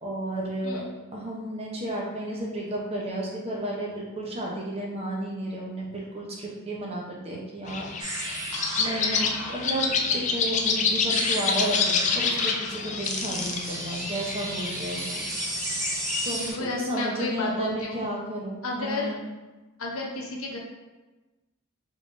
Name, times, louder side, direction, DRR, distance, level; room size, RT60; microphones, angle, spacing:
voice 1, 0.0-0.8 1.1-8.4 8.8-15.7 16.2-19.2, right 1 dB, 25° right, -2 dB, 0.7 m, -32 dB
sound 1, 7.7-16.6, left 5 dB, 35° left, 0.3 m, -28 dB
sound 2, 8.0-16.5, right 1 dB, 80° right, 1.0 m, -34 dB
voice 2, 16.4-18.0 18.6-19.2 19.8-20.6, left 2 dB, 70° left, -1 dB, 0.8 m, -32 dB
5.2 x 3.6 x 2.6 m, 1.2 s
head